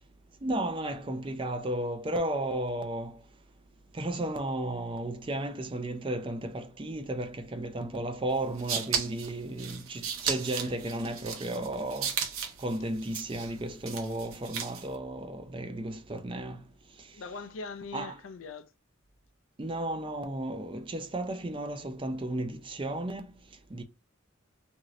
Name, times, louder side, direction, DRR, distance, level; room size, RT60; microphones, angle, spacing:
voice 1, 0.4-3.2 4.0-12.1 12.6-16.6 17.9-18.2 19.6-23.2 23.7-23.8, right 1 dB, 25° right, 0.4 m, -34 dB
sound 1, 8.3-14.9, right 7 dB, 85° right, 0.8 m, -35 dB
voice 2, 17.1-18.7, left 4 dB, 70° left, 0.4 m, -41 dB
3.0 x 2.6 x 2.5 m
head